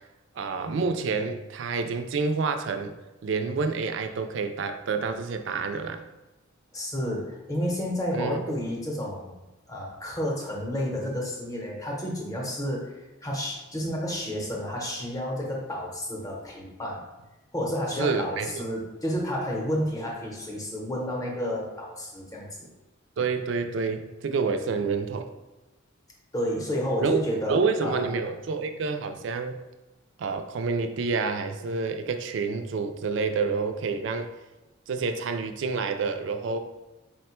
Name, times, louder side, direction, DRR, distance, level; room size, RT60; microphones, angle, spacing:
voice 1, 0.4-2.9 3.2-6.0 8.1-8.6 18.0-18.7 23.2-25.3 27.0-27.2 27.5-29.6 30.2-34.3 34.9-36.6, right 4 dB, 65° right, 7 dB, 0.4 m, -28 dB
voice 2, 6.7-9.3 9.7-17.0 17.5-22.7 26.3-28.0, equal, 15° left, -2 dB, 0.8 m, -31 dB
4.3 x 2.2 x 4.3 m, 1.1 s
head